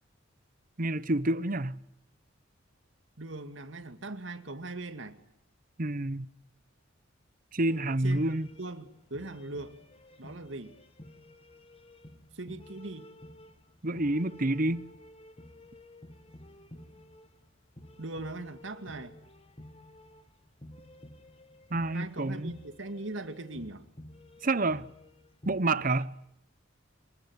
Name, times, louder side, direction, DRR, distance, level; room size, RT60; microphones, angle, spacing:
voice 1, 0.8-1.8 5.8-6.3 7.5-8.5 13.8-14.8 21.7-22.6 24.4-24.9 25.5-26.1, right 2 dB, 40° right, 0.9 m, -28 dB
voice 2, 3.2-5.2 8.0-8.3 8.6-9.8 10.2-10.8 12.3-13.1 18.0-19.2 21.9-23.9, right 2 dB, 65° right, 2.3 m, -40 dB
sound 1, 7.7-26.1, left 1 dB, 30° left, 1.8 m, -52 dB
26.5 x 21.0 x 9.6 m
head